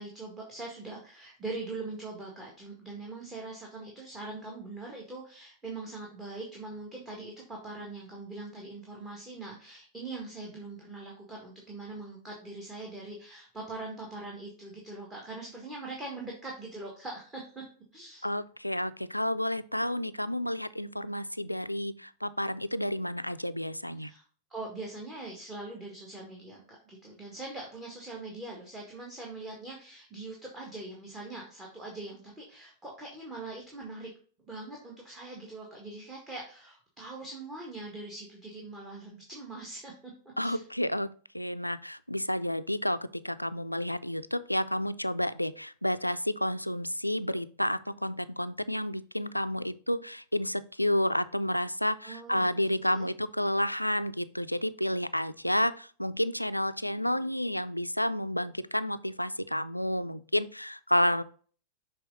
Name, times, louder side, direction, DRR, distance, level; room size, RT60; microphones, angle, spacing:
voice 1, 0.0-17.6 17.9-18.2 24.0-24.2 24.5-34.1 34.5-40.1 40.4-40.6 52.0-53.1, right 2 dB, 15° right, -1 dB, 1.7 m, -42 dB
voice 2, 18.2-24.1 40.4-61.2, left 1 dB, 90° left, 14 dB, 0.3 m, -30 dB
6.8 x 3.6 x 3.9 m, 0.43 s
figure-of-eight pair, 90°, 0 cm